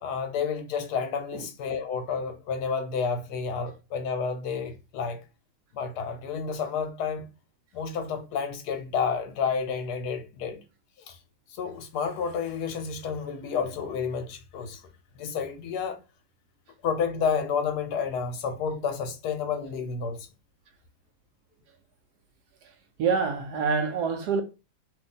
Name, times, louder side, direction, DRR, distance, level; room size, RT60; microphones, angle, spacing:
voice 1, 0.0-5.2 5.7-7.2 7.7-10.6 11.1-11.2 11.6-14.8 15.2-16.0 16.8-20.3, left 6 dB, 70° left, 1.1 m, -30 dB
voice 2, 22.6-24.4, right 5 dB, 70° right, 1.0 m, -27 dB
2.9 x 2.6 x 3.7 m
omnidirectional pair, 2.0 m